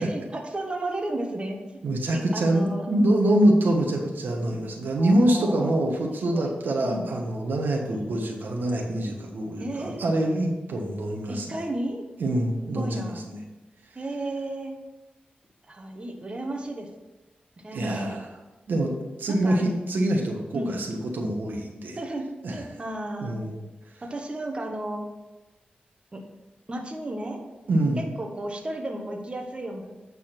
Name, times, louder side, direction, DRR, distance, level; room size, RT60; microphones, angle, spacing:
voice 1, 0.0-1.6 2.1-2.9 5.0-5.8 6.3-6.5 6.8-7.1 7.9-8.2 9.6-10.0 11.3-12.0 12.7-13.2 13.9-14.7 15.7-16.9 17.6-18.2 19.3-19.9 20.5-20.7 22.0-22.3 22.5-23.4 24.1-25.1 26.1-26.2 26.7-27.4 28.0-29.9, right 1 dB, 30° right, 2 dB, 1.3 m, -33 dB
voice 2, 1.8-11.6 12.2-13.4 17.7-18.4 18.7-18.9 19.2-22.0 22.4-22.6 23.2-23.6 27.7-28.0, right 1 dB, 85° right, 1 dB, 1.4 m, -25 dB
9.4 x 4.1 x 6.0 m, 1.1 s
wide cardioid pair, 75°, 3 cm